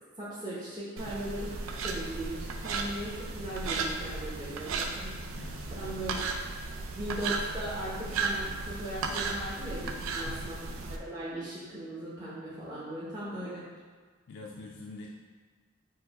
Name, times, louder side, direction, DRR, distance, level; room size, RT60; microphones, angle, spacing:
voice 1, 0.2-5.4 5.8-6.2 6.9-13.6, right 1 dB, 20° right, -10 dB, 0.8 m, -38 dB
sound 1, 1.0-11.0, right 3 dB, 90° right, 0.4 m, -35 dB
voice 2, 5.3-6.0 9.8-10.5 14.3-15.1, left 3 dB, 65° left, -1 dB, 0.4 m, -46 dB
4.5 x 2.1 x 4.6 m, 1.5 s
head